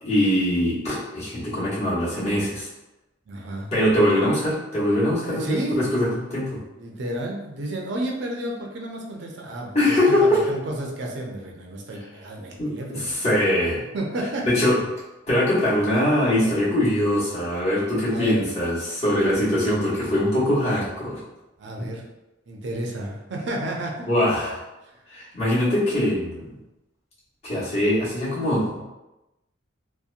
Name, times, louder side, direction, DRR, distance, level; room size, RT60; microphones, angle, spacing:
voice 1, 0.0-2.7 3.7-6.6 9.7-10.4 12.6-13.8 14.5-14.8 15.3-21.2 21.8-21.9 24.1-24.6 25.1-26.5 27.4-28.8, left 1 dB, 35° left, -9 dB, 1.0 m, -22 dB
voice 2, 3.3-3.7 5.2-5.8 6.8-13.2 13.9-14.5 18.1-18.4 21.6-22.0 22.5-24.1, right 1 dB, 65° right, 0 dB, 0.5 m, -31 dB
2.7 x 2.1 x 2.4 m, 1.0 s
head